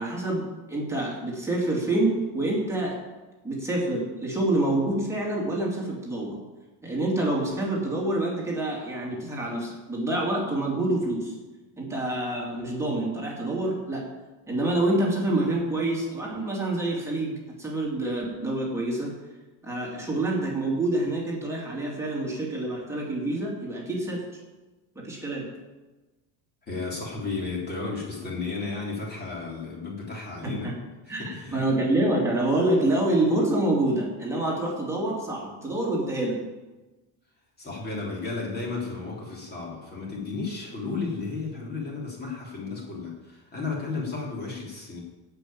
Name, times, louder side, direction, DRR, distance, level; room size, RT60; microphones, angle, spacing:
voice 1, 0.0-3.0 3.4-6.4 6.8-11.3 11.8-14.1 14.5-19.1 19.6-24.2 24.9-25.5 30.4-30.7 31.1-36.4, right 1 dB, 5° right, -4 dB, 2.7 m, -27 dB
voice 2, 26.7-30.7 31.0-31.6 37.6-45.0, left 4 dB, 20° left, -3 dB, 3.3 m, -33 dB
16.5 x 5.8 x 8.7 m, 1.2 s
cardioid pair, 175°, 48 cm